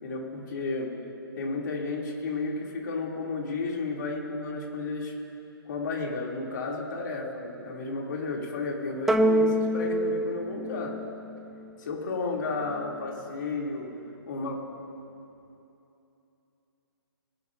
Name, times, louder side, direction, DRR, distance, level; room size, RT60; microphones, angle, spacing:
voice 1, 0.0-0.9 1.3-5.1 5.6-11.0 11.8-13.9 14.3-14.6, left 3 dB, 50° left, -2 dB, 3.4 m, -32 dB
sound 1, 9.1-11.7, right 1 dB, ahead, 0.4 m, -26 dB
25.5 x 11.0 x 2.9 m, 2.8 s
hypercardioid pair, 145°, 13 cm